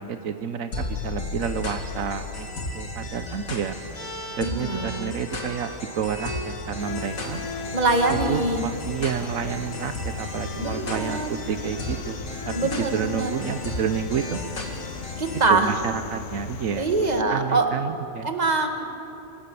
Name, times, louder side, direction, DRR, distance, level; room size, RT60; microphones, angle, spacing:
voice 1, 0.0-2.5 2.7-3.8 4.4-7.4 8.3-14.4 15.5-16.9 17.3-18.3, right 7 dB, 75° right, 9 dB, 1.2 m, -30 dB
sound 1, 0.7-15.5, left 2 dB, 85° left, 2.5 m, -35 dB
sound 2, 3.9-8.5 9.5-9.7 10.2-15.0, left 2 dB, 25° left, 1.3 m, -39 dB
voice 2, 4.4-5.1 7.7-8.7 10.6-11.3 12.5-13.4 15.2-15.7 16.8-17.7 18.2-18.8, right 3 dB, 30° right, 5 dB, 1.7 m, -24 dB
sound 3, 6.8-17.2, left 9 dB, 70° left, 1.1 m, -38 dB
26.5 x 15.5 x 6.9 m, 2.8 s
omnidirectional pair, 1.4 m